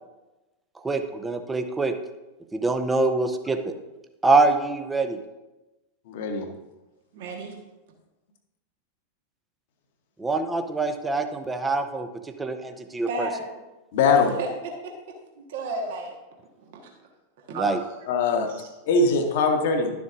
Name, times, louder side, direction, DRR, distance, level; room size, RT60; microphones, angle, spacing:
voice 1, 0.8-1.9 2.5-3.7 4.2-5.2 10.2-12.1 12.4-13.3 17.5-17.8, right 3 dB, 10° right, 7 dB, 0.7 m, -24 dB
voice 2, 6.1-6.5 13.9-14.3 18.1-18.5 18.9-19.9, left 4 dB, 55° left, 4 dB, 1.1 m, -21 dB
voice 3, 7.1-7.6 13.1-13.6 14.1-14.5 14.8-14.9 15.4-16.1 16.6-16.9 17.5-17.7 18.0-18.1 18.5-18.7, right 2 dB, 55° right, 1 dB, 1.4 m, -33 dB
11.5 x 7.0 x 2.6 m, 1.1 s
figure-of-eight pair, 90°, 0 cm